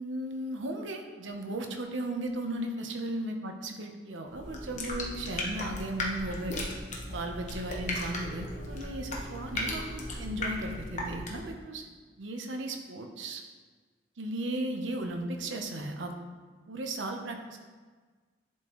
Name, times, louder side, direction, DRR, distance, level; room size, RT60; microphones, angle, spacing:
voice 1, 0.0-6.7 7.1-11.8 12.2-13.4 14.2-16.1 16.7-17.6, right 1 dB, 90° right, 3 dB, 0.9 m, -36 dB
sound 1, 4.3-11.6, left 1 dB, 40° left, 1.0 m, -36 dB
11.0 x 4.5 x 3.1 m, 1.4 s
head